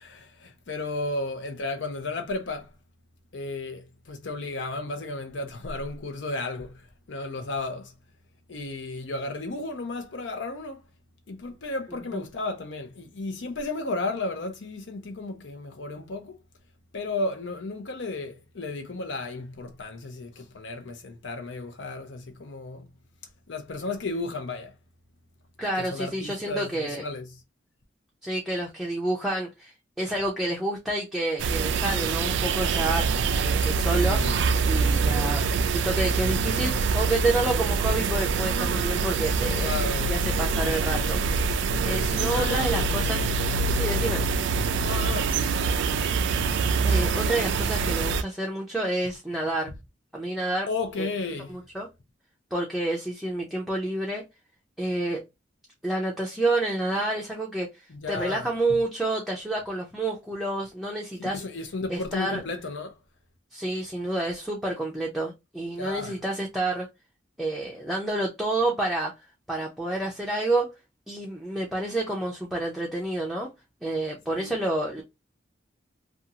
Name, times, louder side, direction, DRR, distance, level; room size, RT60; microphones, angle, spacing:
voice 1, 0.0-2.7 3.3-7.9 8.5-10.8 11.3-16.4 16.9-22.9 23.5-24.7 25.8-27.4 33.8-34.4 39.6-40.2 42.1-43.4 44.8-46.4 50.7-51.6 57.9-58.8 61.2-63.0 65.8-66.2 74.4-74.5, left 2 dB, 75° left, 0.6 m, -34 dB
voice 2, 25.6-27.0 28.2-33.1 33.4-34.2 34.7-35.4 35.7-39.7 40.1-41.2 41.8-43.3 43.7-44.2 46.8-49.7 50.1-50.7 51.0-51.1 51.5-51.9 52.5-54.2 54.8-55.2 55.8-57.8 58.1-61.4 61.9-62.4 63.5-66.9 67.4-69.1 69.5-70.7 71.1-73.5 73.8-75.0, right 2 dB, ahead, 0.5 m, -29 dB
sound 1, 31.4-48.2, right 4 dB, 70° right, 0.3 m, -25 dB
2.6 x 2.4 x 2.7 m
head